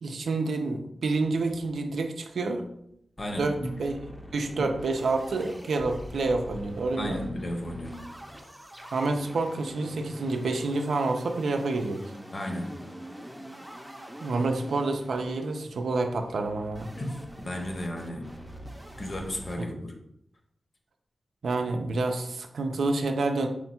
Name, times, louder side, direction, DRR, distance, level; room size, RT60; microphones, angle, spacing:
voice 1, 0.0-2.7 3.4-4.0 4.3-7.3 8.9-12.1 14.2-16.9 19.6-19.7 21.4-23.5, right 3 dB, 90° right, 5 dB, 0.5 m, -28 dB
voice 2, 3.2-3.8 4.6-4.7 7.0-8.0 12.3-12.8 17.0-18.3 19.0-19.9, left 1 dB, 40° left, 3 dB, 0.7 m, -34 dB
sound 1, 3.2-19.6, equal, 5° right, 0.5 m, -44 dB
4.4 x 2.3 x 4.2 m, 0.75 s
wide cardioid pair, 120°, 0 cm